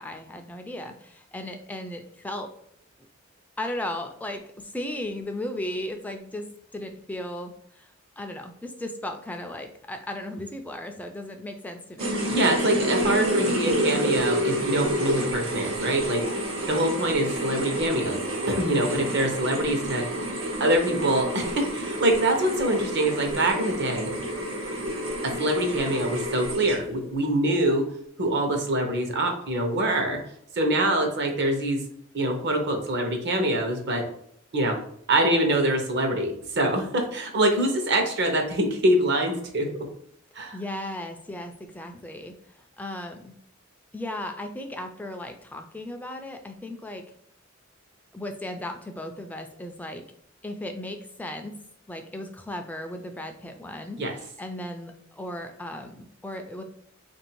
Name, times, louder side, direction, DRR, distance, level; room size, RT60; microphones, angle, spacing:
voice 1, 0.0-2.5 3.6-6.5 6.7-12.2 30.7-31.1 40.5-43.4 43.9-47.0 48.1-50.1 50.4-51.5 51.9-56.6, left 1 dB, 10° left, 5 dB, 0.3 m, -36 dB
sound 1, 12.0-27.1, equal, 80° right, 1.2 m, -29 dB
voice 2, 12.3-16.3 16.6-20.1 20.6-24.1 25.2-27.9 28.2-30.2 30.5-31.8 32.1-34.1 34.5-34.8 35.1-39.9 40.3-40.6 54.0-54.1, right 1 dB, 55° right, 3 dB, 0.9 m, -24 dB
3.4 x 2.6 x 4.4 m, 0.69 s
head